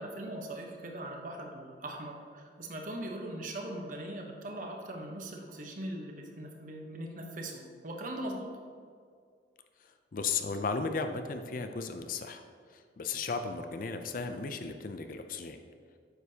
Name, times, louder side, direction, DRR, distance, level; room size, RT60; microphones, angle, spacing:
voice 1, 0.0-8.6, right 1 dB, 45° right, 2 dB, 0.9 m, -40 dB
voice 2, 9.8-12.4 12.7-15.6, left 4 dB, 50° left, 7 dB, 0.4 m, -35 dB
9.2 x 6.6 x 2.8 m, 2.1 s
head